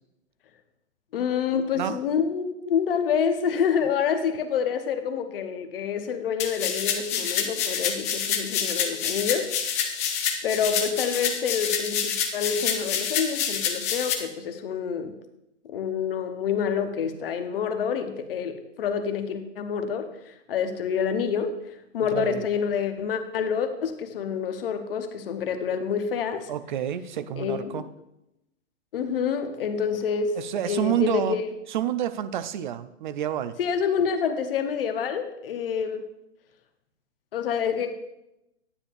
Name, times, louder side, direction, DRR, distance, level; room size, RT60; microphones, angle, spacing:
voice 1, 1.1-10.0 10.4-15.1 15.6-26.5 27.4-27.9 28.9-30.4 30.7-31.4 33.6-36.0 37.3-37.9, left 7 dB, 50° left, 8 dB, 1.0 m, -27 dB
sound 1, 6.4-14.1, left 7 dB, 15° left, 0.4 m, -27 dB
voice 2, 22.1-22.4 26.5-27.9 30.4-31.4 31.7-33.6, right 10 dB, 40° right, 13 dB, 0.5 m, -28 dB
9.7 x 9.7 x 2.5 m, 0.88 s
figure-of-eight pair, 115°, 37 cm